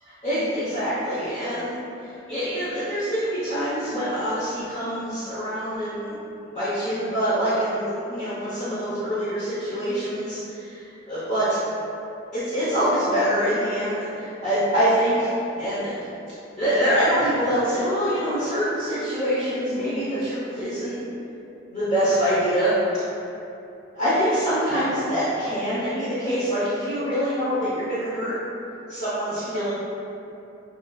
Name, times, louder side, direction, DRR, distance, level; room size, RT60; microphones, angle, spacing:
voice 1, 0.2-1.7 2.0-6.2 6.5-11.4 12.3-15.3 15.6-16.0 16.6-21.0 21.7-23.0 23.9-28.3 28.9-29.7, equal, 40° left, -12 dB, 0.9 m, -25 dB
7.1 x 2.7 x 2.3 m, 2.8 s
head